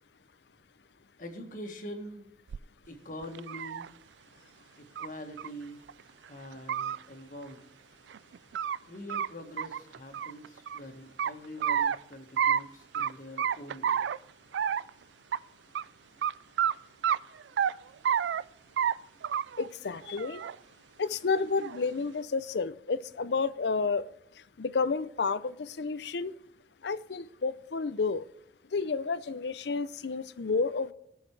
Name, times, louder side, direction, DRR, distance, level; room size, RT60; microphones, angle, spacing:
voice 1, 1.2-2.3 2.9-3.9 4.8-5.8 6.3-7.7 8.9-14.0, equal, 45° left, 5 dB, 1.7 m, -44 dB
sound 1, 2.5-2.6 3.2-3.9 5.0-5.1 5.4-5.5 5.9-6.0 6.5-7.0 8.1-8.8 9.1-9.3 9.6-10.8 11.2-12.0 12.4-12.6 12.9-13.1 13.4-14.2 14.5-14.9 15.3-15.4 15.8-15.9 16.2-16.3 16.6-16.7 17.0-17.7 18.0-18.4 18.8-18.9 19.2-19.7 20.0-20.6 21.3-21.8, right 8 dB, 85° right, 0.3 m, -29 dB
voice 2, 19.6-20.4 21.0-24.1 24.6-26.3 26.8-28.3 28.7-30.9, left 4 dB, 75° left, 16 dB, 0.5 m, -30 dB
18.5 x 6.4 x 3.3 m, 0.80 s
head